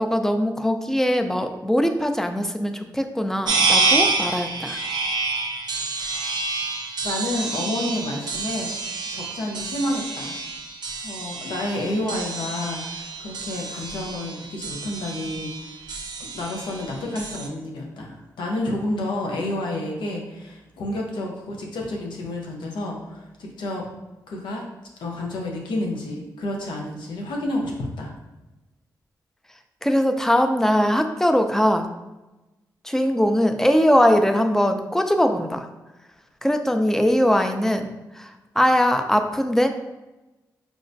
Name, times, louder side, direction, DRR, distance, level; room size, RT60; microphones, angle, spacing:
voice 1, 0.0-4.8 29.8-31.9 32.8-35.7 36.4-39.7, equal, 5° left, 6 dB, 0.4 m, -21 dB
sound 1, 3.5-17.5, right 3 dB, 65° right, 0.5 m, -28 dB
voice 2, 7.0-8.7 9.1-10.4 11.0-15.9 16.2-23.9 24.3-24.7 25.0-28.1, left 1 dB, 85° left, 0 dB, 0.6 m, -30 dB
4.6 x 2.1 x 2.6 m, 1.0 s
supercardioid pair, 45°, 8 cm